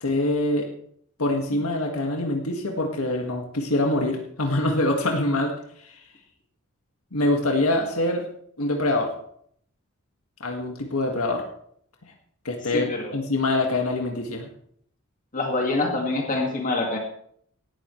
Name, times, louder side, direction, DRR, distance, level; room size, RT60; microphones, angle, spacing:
voice 1, 0.0-0.7 1.2-5.5 5.8-6.0 7.1-8.3 8.6-9.1 10.4-11.5 12.5-14.5, left 2 dB, 90° left, 2 dB, 1.9 m, -24 dB
voice 2, 12.7-13.1 15.3-17.0, left 2 dB, 40° left, 1 dB, 2.1 m, -25 dB
18.0 x 12.5 x 3.2 m, 0.65 s
head